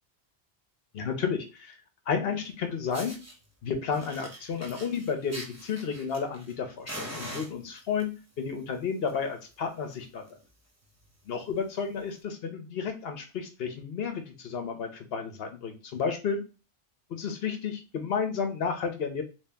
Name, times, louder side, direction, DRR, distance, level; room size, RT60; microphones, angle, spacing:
voice 1, 0.9-1.8 2.1-3.1 3.6-8.1 8.4-10.2 11.3-16.4 17.1-19.2, left 6 dB, 65° left, 6 dB, 1.0 m, -32 dB
Fire, 2.4-2.5 2.9-3.3 3.9-6.5 6.9-8.0 8.8-9.1 9.4-9.5 9.9-10.0 10.2-10.5 11.0-11.1 12.1-12.2, right 1 dB, 15° right, 0.7 m, -42 dB
2.9 x 2.8 x 3.4 m, 0.32 s
omnidirectional pair, 1.1 m